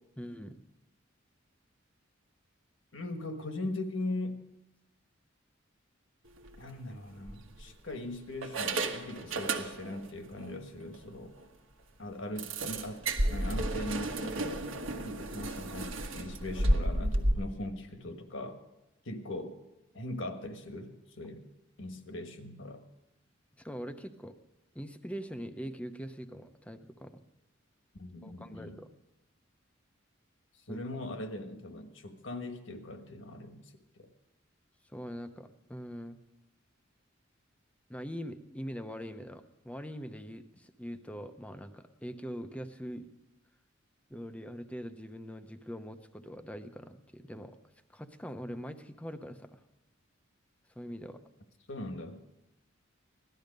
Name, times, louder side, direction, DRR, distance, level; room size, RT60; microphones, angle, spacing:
voice 1, 0.2-0.6 23.6-24.4 24.7-27.2 28.2-28.9 30.7-30.8 34.9-36.2 37.9-43.1 44.1-47.6 47.9-49.6 50.8-51.2, equal, 5° left, 9 dB, 0.7 m, -42 dB
voice 2, 2.9-4.4 6.6-11.3 12.0-13.0 13.3-14.7 15.0-18.6 19.0-19.5 19.9-21.5 21.8-22.8 28.0-28.8 30.7-34.1 51.7-52.2, left 1 dB, 65° left, 6 dB, 1.5 m, -40 dB
sound 1, 6.4-6.6 7.3-7.9 8.4-10.1 10.4-10.5 10.9-11.0 11.4-11.5 12.4-17.3, right 1 dB, 85° right, 1.4 m, -32 dB
17.0 x 12.5 x 5.3 m, 0.96 s
head